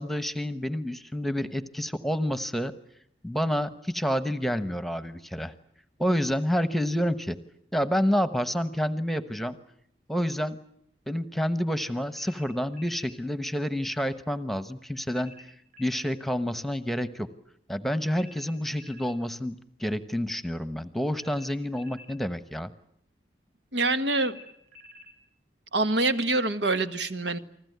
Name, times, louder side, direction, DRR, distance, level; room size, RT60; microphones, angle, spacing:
voice 1, 0.0-2.7 3.2-5.5 6.0-7.4 7.7-9.6 10.1-10.6 11.1-15.5 15.8-17.3 17.7-19.5 19.8-22.7, equal, ahead, 11 dB, 1.0 m, -28 dB
sound 1, 12.1-13.1 15.1-16.1 18.1-19.1 21.1-22.1 24.1-25.1, left 2 dB, 45° right, 7.6 m, -50 dB
voice 2, 23.7-24.4 25.7-27.4, right 2 dB, 85° right, 9 dB, 1.6 m, -25 dB
29.5 x 20.0 x 9.4 m, 0.72 s
head